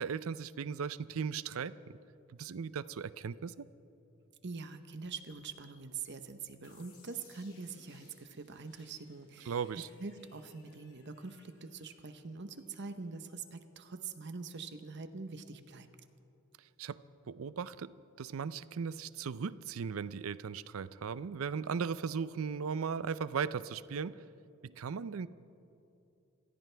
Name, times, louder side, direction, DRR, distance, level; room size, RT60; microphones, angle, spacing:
voice 1, 0.0-1.8 2.4-3.6 9.5-9.9 16.8-17.0 17.3-24.2 24.6-25.3, right 6 dB, 80° right, 16 dB, 0.5 m, -37 dB
voice 2, 4.4-9.6 10.0-15.9, right 4 dB, 55° right, 9 dB, 0.9 m, -44 dB
sound 1, 6.6-13.4, left 4 dB, 85° left, 3.7 m, -65 dB
27.0 x 15.5 x 3.4 m, 2.8 s
head